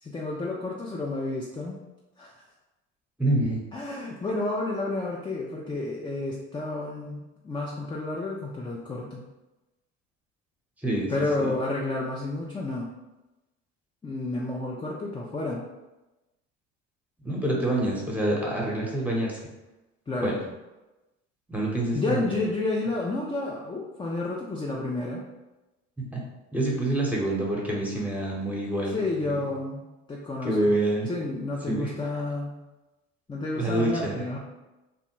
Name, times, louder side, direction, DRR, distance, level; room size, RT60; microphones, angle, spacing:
voice 1, 0.0-1.8 2.2-2.3 3.7-9.3 11.1-12.9 14.0-15.6 20.1-20.4 21.9-25.2 28.9-30.6 31.1-32.5 33.3-34.4, left 2 dB, 15° left, -2 dB, 0.4 m, -30 dB
voice 2, 3.2-3.6 10.8-11.1 11.4-11.5 17.2-19.4 20.2-20.4 21.5-22.2 26.1-26.2 26.5-29.4 30.4-31.1 31.7-31.9 33.5-34.2, right 1 dB, 5° right, -3 dB, 0.9 m, -26 dB
2.8 x 2.0 x 3.1 m, 1.0 s
hypercardioid pair, 65°, 36 cm